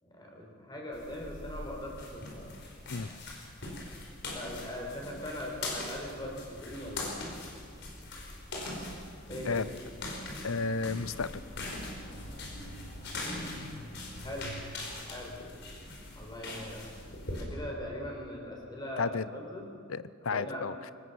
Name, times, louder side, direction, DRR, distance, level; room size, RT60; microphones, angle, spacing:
voice 1, 0.0-2.5 4.3-7.2 9.3-9.7 13.1-13.6 14.2-14.5 15.1-15.4 16.2-16.8 17.3-19.7 20.3-20.6, equal, 20° left, 0 dB, 4.7 m, -41 dB
sound 1, 0.9-17.4, left 2 dB, 60° left, 4.9 m, -41 dB
voice 2, 10.4-11.4 19.0-19.2 19.9-20.9, left 4 dB, 90° left, 17 dB, 0.7 m, -32 dB
23.5 x 19.0 x 7.2 m, 2.3 s
head